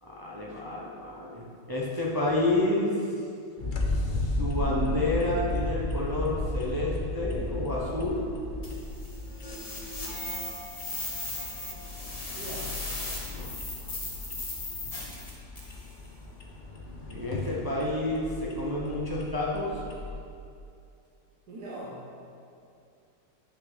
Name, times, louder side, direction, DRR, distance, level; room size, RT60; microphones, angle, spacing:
voice 1, 0.0-3.1 3.9-8.3 13.3-13.5 17.1-19.7, left 2 dB, 20° right, -5 dB, 0.5 m, -30 dB
sound 1, 3.6-20.1, left 2 dB, 60° left, 0.5 m, -35 dB
sound 2, 8.6-15.8, left 2 dB, 25° left, 0.9 m, -37 dB
voice 2, 12.4-12.8 21.5-22.1, right 1 dB, 60° right, -6 dB, 1.6 m, -40 dB
8.6 x 6.1 x 4.0 m, 2.5 s
omnidirectional pair, 2.0 m